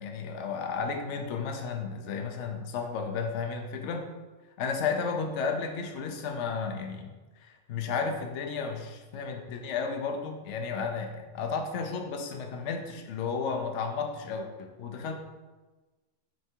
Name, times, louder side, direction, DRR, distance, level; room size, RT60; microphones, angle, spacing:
voice 1, 0.0-4.1 4.6-7.1 7.4-15.1, left 5 dB, 65° left, 4 dB, 1.0 m, -33 dB
7.5 x 3.4 x 4.5 m, 1.2 s
omnidirectional pair, 1.3 m